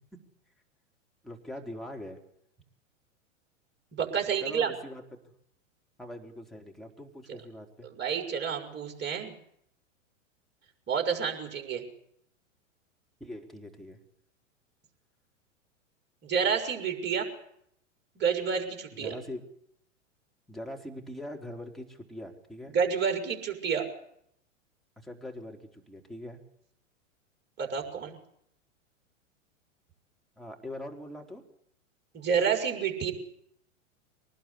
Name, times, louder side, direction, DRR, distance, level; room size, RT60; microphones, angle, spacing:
voice 1, 1.2-2.2 4.4-5.0 6.0-7.9 13.2-14.0 19.0-19.4 20.5-22.7 25.0-26.4 30.4-31.4, left 1 dB, ahead, 1 dB, 4.1 m, -42 dB
voice 2, 3.9-4.7 7.3-7.4 7.8-9.4 10.9-11.8 16.2-17.3 18.2-19.1 22.7-23.8 27.6-28.2 32.1-33.1, right 6 dB, 25° right, 4 dB, 6.0 m, -29 dB
24.0 x 19.5 x 8.5 m, 0.72 s
hypercardioid pair, 105°, 38 cm